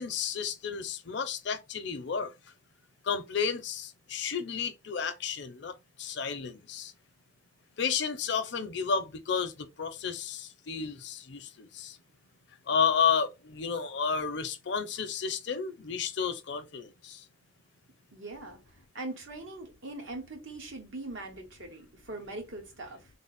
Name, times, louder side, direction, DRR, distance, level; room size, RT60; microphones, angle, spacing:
voice 1, 0.0-2.3 3.0-6.9 7.8-12.0 12.7-17.3, left 6 dB, 60° left, 0.5 m, -32 dB
voice 2, 18.1-23.1, right 2 dB, 80° right, 1.2 m, -41 dB
3.3 x 2.0 x 4.0 m
head